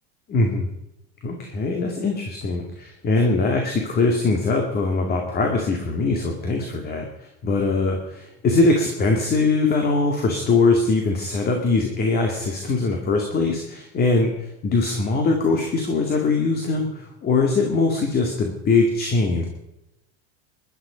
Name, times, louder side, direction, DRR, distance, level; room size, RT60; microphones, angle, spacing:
voice 1, 0.3-0.7 1.2-19.5, left 3 dB, 30° left, 3 dB, 2.2 m, -22 dB
20.0 x 12.0 x 5.1 m, 0.90 s
supercardioid pair, 140°, 31 cm